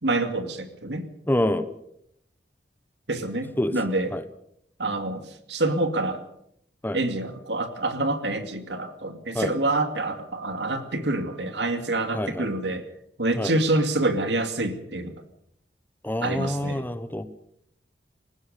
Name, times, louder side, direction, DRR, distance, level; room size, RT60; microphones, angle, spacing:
voice 1, 0.0-1.1 3.1-4.1 4.8-5.2 5.5-6.3 6.9-12.8 13.2-15.1 16.2-16.8, right 2 dB, 75° right, 8 dB, 2.4 m, -27 dB
voice 2, 1.3-1.7 3.6-3.7 4.1-4.2 6.8-7.0 9.3-9.5 12.1-12.5 13.4-13.5 16.0-17.3, left 1 dB, 10° left, 12 dB, 1.1 m, -26 dB
21.0 x 18.5 x 6.8 m, 0.74 s
head